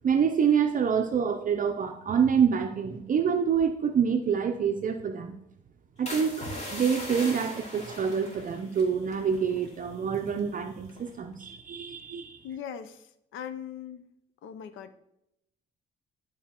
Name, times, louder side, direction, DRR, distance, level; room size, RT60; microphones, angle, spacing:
voice 1, 0.0-5.3 6.0-12.4, right 7 dB, 40° right, 5 dB, 0.6 m, -26 dB
sound 1, 6.1-10.4 10.9-11.2, left 1 dB, 35° left, 2.4 m, -40 dB
voice 2, 12.4-14.1 14.4-15.0, left 8 dB, 85° left, 10 dB, 0.6 m, -40 dB
11.5 x 4.7 x 2.9 m, 0.82 s
cardioid pair, 90°, 20 cm